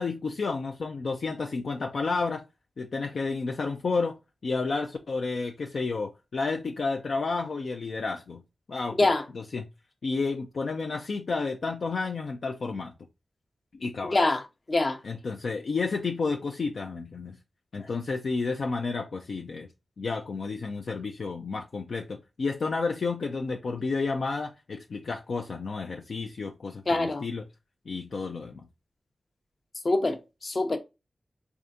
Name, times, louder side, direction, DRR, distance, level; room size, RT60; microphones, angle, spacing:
voice 1, 0.0-2.4 2.8-4.2 4.4-8.4 8.7-9.1 9.3-9.7 10.0-12.9 13.7-14.2 15.0-17.4 17.7-19.7 20.0-27.4 27.9-28.6, left 4 dB, 75° left, 0.4 m, -31 dB
voice 2, 14.0-14.4 14.7-15.0 26.9-27.3 29.8-30.8, left 2 dB, 50° left, 0.8 m, -24 dB
3.6 x 3.4 x 2.6 m
cardioid pair, 40°, 0 cm